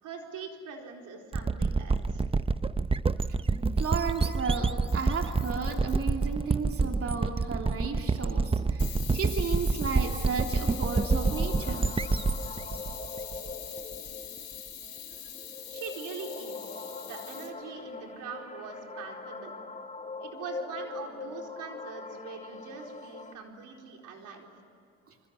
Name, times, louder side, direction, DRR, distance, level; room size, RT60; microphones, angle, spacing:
voice 1, 0.0-2.3 15.7-19.5 20.2-24.5, right 5 dB, 85° right, 2 dB, 4.3 m, -43 dB
sound 1, 1.3-13.9, right 4 dB, 20° right, 0.7 m, -28 dB
Camera, 3.7-4.4 4.9-6.4 8.8-17.5, left 9 dB, 65° left, 5.0 m, -43 dB
voice 2, 3.8-11.9 14.8-15.0 25.1-25.2, right 5 dB, 50° right, 2 dB, 2.9 m, -34 dB
sound 2, 9.8-23.3, left 3 dB, 25° left, 2.2 m, -42 dB
27.0 x 25.5 x 8.2 m, 2.7 s
cardioid pair, 90°, 30 cm